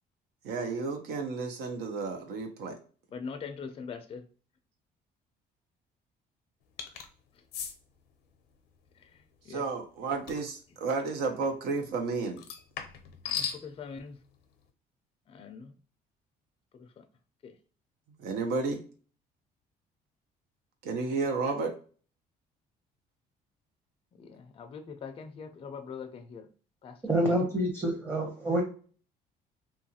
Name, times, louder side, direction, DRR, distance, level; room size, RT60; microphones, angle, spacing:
voice 1, 0.4-2.8 9.5-12.4 18.2-18.8 20.8-21.7, right 4 dB, 75° right, 0.6 m, -32 dB
voice 2, 3.1-4.2 9.0-9.7 13.2-14.2 15.3-15.8 16.7-17.1 17.4-17.6 24.2-26.5 26.8-27.3, left 5 dB, 35° left, 0.4 m, -43 dB
sound 1, 6.8-7.1 7.5-7.7 10.3-10.5 12.4-13.6, left 8 dB, 80° left, 0.6 m, -36 dB
voice 3, 27.1-28.6, right 1 dB, 10° right, 0.7 m, -27 dB
2.8 x 2.3 x 2.7 m
cardioid pair, 110°, 17 cm